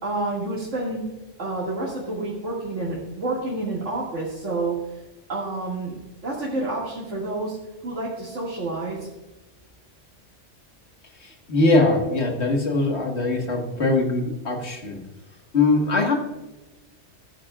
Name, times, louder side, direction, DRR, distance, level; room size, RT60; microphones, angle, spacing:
voice 1, 0.0-1.0 1.4-5.0 5.3-6.0 6.2-7.6 7.8-9.1, right 2 dB, 85° right, -7 dB, 2.6 m, -29 dB
voice 2, 11.2-15.0 15.5-16.1, left 2 dB, 65° left, 2 dB, 2.0 m, -21 dB
15.5 x 10.0 x 2.4 m, 1.0 s
omnidirectional pair, 1.2 m